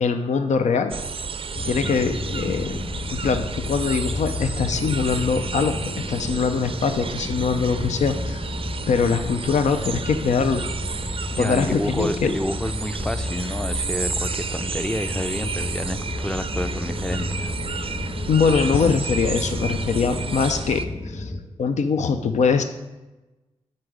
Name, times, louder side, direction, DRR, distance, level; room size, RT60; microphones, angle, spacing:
voice 1, 0.0-1.0 1.6-2.8 3.1-8.5 8.9-10.6 11.3-12.3 18.3-21.3 21.6-22.6, left 5 dB, 65° left, 8 dB, 0.6 m, -22 dB
sound 1, 0.9-20.8, right 5 dB, 45° right, 0.5 m, -32 dB
sound 2, 1.5-21.4, left 2 dB, 35° left, 1.3 m, -32 dB
voice 2, 11.3-17.5, left 1 dB, 5° left, 12 dB, 0.5 m, -29 dB
9.9 x 4.0 x 5.0 m, 1.1 s
supercardioid pair, 45°, 13 cm